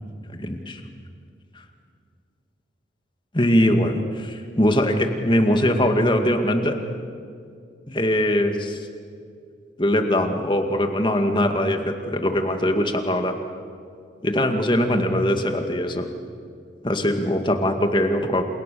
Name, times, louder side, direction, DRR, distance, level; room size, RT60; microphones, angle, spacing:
voice 1, 0.3-0.8 3.3-6.8 7.9-8.8 9.8-13.4 14.2-16.1 16.8-18.4, left 1 dB, 25° left, 6 dB, 2.2 m, -21 dB
29.0 x 28.5 x 7.0 m, 2.3 s
head